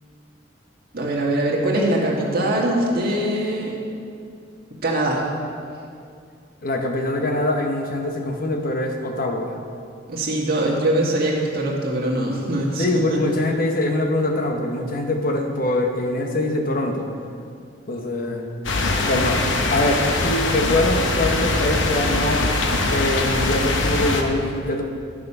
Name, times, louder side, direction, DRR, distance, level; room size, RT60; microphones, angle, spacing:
voice 1, 0.9-3.8 4.8-5.2 10.1-13.2, right 1 dB, 55° right, -2 dB, 1.8 m, -22 dB
voice 2, 6.6-9.6 12.8-17.1 17.9-18.5 19.1-19.4 19.7-22.5 22.9-24.8, left 1 dB, 50° left, 3 dB, 1.0 m, -23 dB
sound 1, 18.6-24.2, left 2 dB, 80° left, 0.9 m, -22 dB
11.0 x 6.8 x 5.5 m, 2.4 s
head